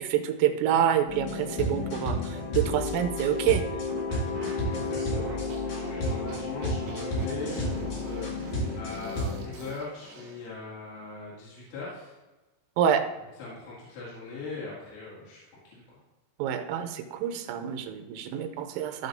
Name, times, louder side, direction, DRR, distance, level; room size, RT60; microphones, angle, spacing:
voice 1, 0.0-3.6 12.8-13.1 16.4-19.1, right 9 dB, 85° right, 7 dB, 3.4 m, -27 dB
sound 1, 1.1-9.4, left 2 dB, 50° left, 3.1 m, -31 dB
sound 2, 3.9-10.5, right 3 dB, 55° right, 3.9 m, -44 dB
voice 2, 4.6-12.2 13.4-16.0 18.3-18.4, left 4 dB, 70° left, -7 dB, 4.6 m, -41 dB
15.5 x 5.7 x 2.7 m, 1.1 s
omnidirectional pair, 6.0 m